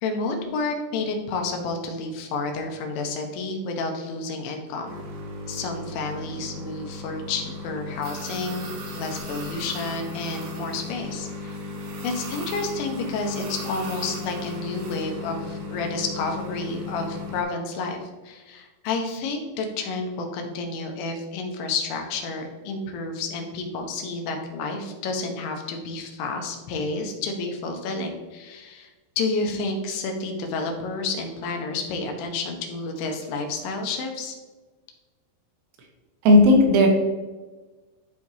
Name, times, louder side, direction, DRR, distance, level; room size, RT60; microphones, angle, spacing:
voice 1, 0.0-4.9 5.5-11.6 12.0-28.9 29.2-34.4, left 3 dB, 85° left, 3 dB, 3.5 m, -30 dB
sound 1, 4.9-17.4, left 2 dB, 65° right, 2.2 m, -36 dB
voice 2, 36.2-36.9, left 1 dB, 80° right, 0 dB, 3.7 m, -14 dB
12.5 x 4.7 x 2.8 m, 1.3 s
omnidirectional pair, 5.2 m